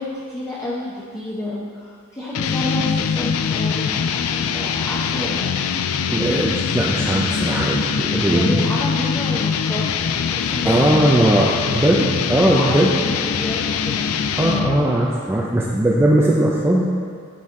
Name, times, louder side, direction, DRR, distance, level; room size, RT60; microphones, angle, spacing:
voice 1, 0.0-5.5 8.2-11.8 12.4-14.1, left 1 dB, 15° left, -7 dB, 0.9 m, -29 dB
sound 1, 2.3-14.9, left 6 dB, 80° left, 0.4 m, -23 dB
voice 2, 6.1-8.6 10.6-13.0 14.4-16.8, right 1 dB, 10° right, -4 dB, 0.5 m, -18 dB
12.0 x 4.4 x 3.7 m, 2.1 s
head